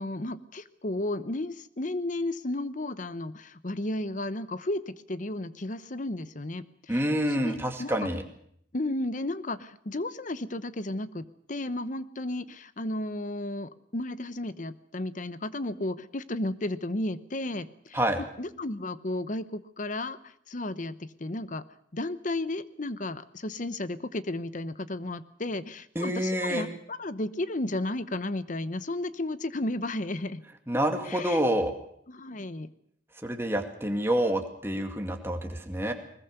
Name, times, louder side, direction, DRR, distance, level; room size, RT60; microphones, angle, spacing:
voice 1, 0.0-8.1 8.7-21.6 21.9-30.4 31.0-31.4 32.1-32.7, left 1 dB, 45° left, 14 dB, 0.9 m, -33 dB
voice 2, 6.9-8.2 17.9-18.2 26.0-26.7 30.7-31.7 33.2-35.9, right 1 dB, 15° right, 4 dB, 2.2 m, -27 dB
20.5 x 20.5 x 6.8 m, 0.67 s
head